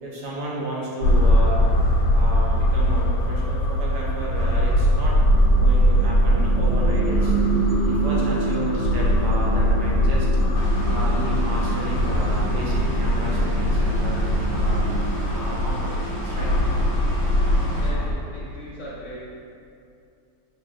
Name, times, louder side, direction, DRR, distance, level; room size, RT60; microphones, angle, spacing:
voice 1, 0.0-1.7 2.1-5.2 5.6-7.3 7.8-10.3 10.9-14.8 15.3-16.5, right 2 dB, 75° right, -5 dB, 1.3 m, -32 dB
sound 1, 1.0-18.1, equal, 85° left, 1.2 m, -21 dB
sound 2, 5.2-15.3, right 3 dB, 35° right, 1.1 m, -29 dB
sound 3, 10.5-17.9, equal, 55° right, 0.5 m, -35 dB
voice 2, 17.6-19.2, equal, 60° left, -7 dB, 0.9 m, -39 dB
4.8 x 3.3 x 2.5 m, 2.5 s
omnidirectional pair, 1.8 m